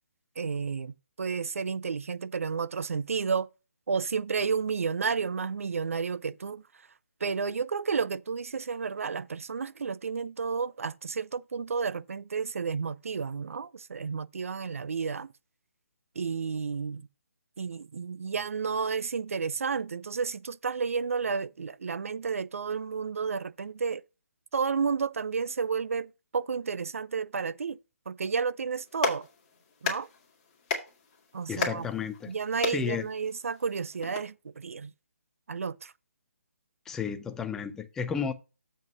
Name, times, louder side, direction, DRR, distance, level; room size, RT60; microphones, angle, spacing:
voice 1, 0.4-3.5 3.9-6.6 7.2-15.3 16.2-17.0 17.6-24.0 24.5-27.8 28.1-29.3 29.8-30.1 31.3-31.9 32.3-34.9 35.5-35.9, right 5 dB, 65° right, 0.5 m, -31 dB
Clapping, 28.7-34.2, left 5 dB, 30° left, 2.2 m, -36 dB
voice 2, 31.5-32.3 32.7-33.1 36.9-38.3, left 6 dB, 5° left, 0.4 m, -32 dB
7.6 x 5.3 x 5.3 m
figure-of-eight pair, 155°, 8 cm